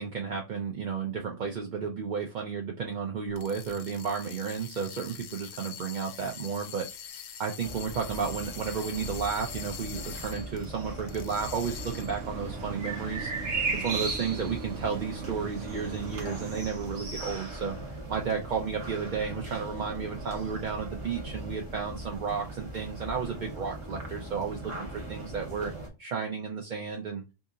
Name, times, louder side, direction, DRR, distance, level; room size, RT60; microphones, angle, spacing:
voice 1, 0.0-13.3 13.8-17.8 18.1-25.7 26.0-27.2, right 6 dB, 50° right, 2 dB, 0.6 m, -33 dB
sound 1, 3.3-10.7 11.1-12.3, left 8 dB, 70° left, 0.8 m, -44 dB
sound 2, 7.6-25.9, right 2 dB, 25° right, 1.0 m, -38 dB
sound 3, 10.2-21.5 22.1-22.2, right 5 dB, 80° right, 1.0 m, -43 dB
2.8 x 2.7 x 3.6 m, 0.27 s
omnidirectional pair, 1.2 m